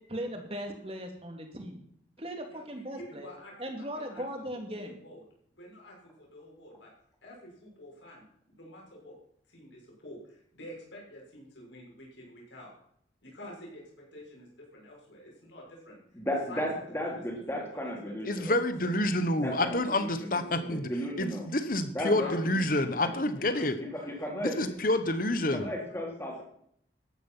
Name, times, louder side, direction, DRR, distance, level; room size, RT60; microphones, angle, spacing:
voice 1, 0.1-1.8 2.2-3.3 3.6-5.0, equal, 30° right, 4 dB, 2.7 m, -38 dB
voice 2, 2.5-5.2 5.6-6.9 7.2-9.1 9.5-12.7 13.2-16.2 16.5-17.1 17.5-19.0 22.2-24.8 25.6-26.0, left 1 dB, 90° left, -2 dB, 6.5 m, -49 dB
voice 3, 16.1-18.6 19.4-21.5 21.9-23.1 23.8-24.5 25.5-26.4, equal, 15° left, 0 dB, 3.6 m, -35 dB
voice 4, 18.3-20.9 21.2-23.7 24.4-25.7, left 1 dB, 50° left, 10 dB, 1.4 m, -28 dB
14.0 x 11.0 x 5.9 m, 0.67 s
head